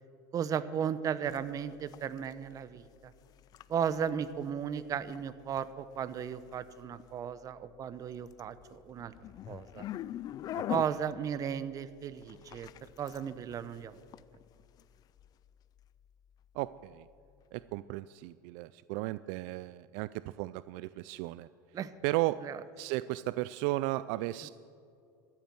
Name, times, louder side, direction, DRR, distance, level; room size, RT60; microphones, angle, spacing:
voice 1, 0.3-3.1 3.7-9.1 9.5-9.8 10.7-12.7 13.0-14.0 21.7-21.9 22.4-22.6, right 8 dB, 35° right, 14 dB, 0.8 m, -35 dB
sound 1, 1.2-17.8, left 12 dB, 40° left, 0.4 m, -46 dB
voice 2, 16.5-17.1 17.5-21.5 22.0-22.4 22.8-24.5, right 18 dB, 70° right, 16 dB, 0.4 m, -35 dB
13.5 x 8.4 x 9.1 m, 2.5 s
supercardioid pair, 115°, 10 cm